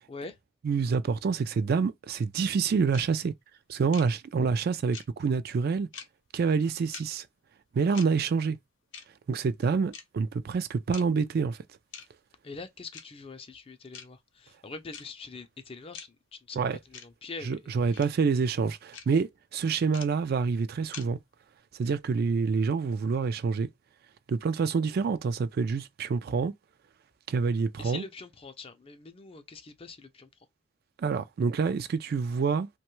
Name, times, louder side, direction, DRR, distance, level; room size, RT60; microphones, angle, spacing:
voice 1, 0.6-3.3 3.7-5.9 6.3-7.3 7.7-8.6 9.3-11.6 16.6-16.8 17.4-21.2 21.7-23.7 24.3-26.5 27.3-28.0 31.0-32.7, right 5 dB, 55° right, 0.3 m, -27 dB
sound 1, 2.9-3.1 3.9-4.1 4.9-5.1 5.9-6.1 6.9-7.0 7.9-8.1 8.9-9.1 9.9-10.0 10.9-11.0 11.9-12.1 12.9-13.0 13.9-14.0 14.9-15.0 15.9-16.1 16.9-17.1 17.9-18.1 18.9-19.1 19.9-20.1 20.9-21.0, left 7 dB, 75° left, 0.6 m, -42 dB
voice 2, 12.4-17.6 17.9-18.0 27.8-30.3, left 4 dB, 30° left, 0.4 m, -44 dB
3.0 x 2.2 x 3.0 m
head